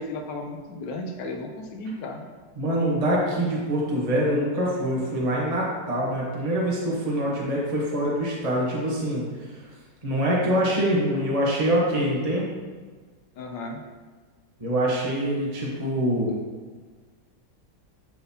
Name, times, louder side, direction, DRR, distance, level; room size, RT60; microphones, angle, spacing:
voice 1, 0.0-2.3 13.3-13.8, left 2 dB, 80° left, 2 dB, 1.3 m, -34 dB
voice 2, 2.6-9.6 10.0-12.5 14.6-16.3, right 1 dB, 25° right, -4 dB, 0.9 m, -25 dB
10.5 x 3.9 x 2.8 m, 1.5 s
omnidirectional pair, 1.9 m